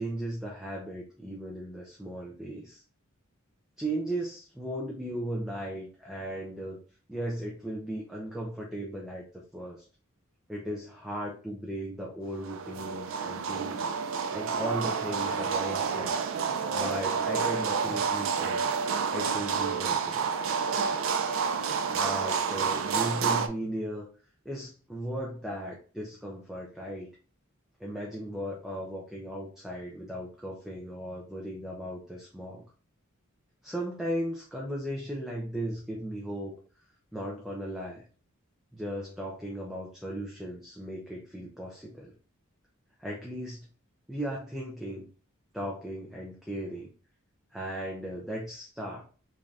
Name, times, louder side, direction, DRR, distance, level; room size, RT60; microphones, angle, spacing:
voice 1, 0.0-2.8 3.8-6.8 7.1-9.2 9.5-9.9 10.5-13.9 14.3-16.1 16.7-18.6 19.1-20.2 21.9-24.1 24.4-27.1 27.8-32.6 33.6-36.5 37.1-38.0 38.7-42.1 43.0-43.7 44.1-45.1 45.5-46.9 47.5-49.0, right 1 dB, ahead, -3 dB, 0.5 m, -36 dB
sound 1, 12.4-23.5, right 6 dB, 65° right, 0.4 m, -29 dB
3.6 x 2.7 x 3.2 m, 0.38 s
head